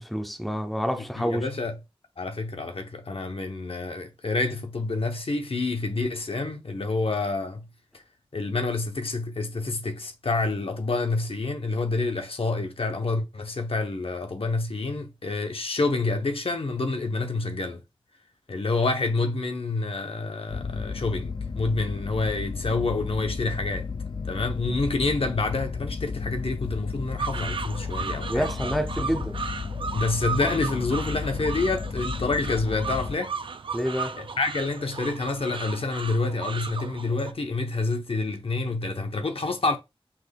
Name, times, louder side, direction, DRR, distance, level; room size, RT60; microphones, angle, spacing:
voice 1, 0.0-1.5 28.3-29.4 33.7-34.2, equal, ahead, 0.6 m, -28 dB
voice 2, 0.9-1.7 2.2-7.7 7.9-8.0 8.3-17.8 18.5-23.9 24.2-28.5 29.9-33.3 34.2-39.8, left 3 dB, 75° left, 0.8 m, -28 dB
sound 1, 20.5-33.2, left 5 dB, 55° left, 0.4 m, -33 dB
sound 2, 27.2-37.3, right 5 dB, 60° right, 0.4 m, -35 dB
5.9 x 3.4 x 2.2 m
wide cardioid pair, 70°, 10 cm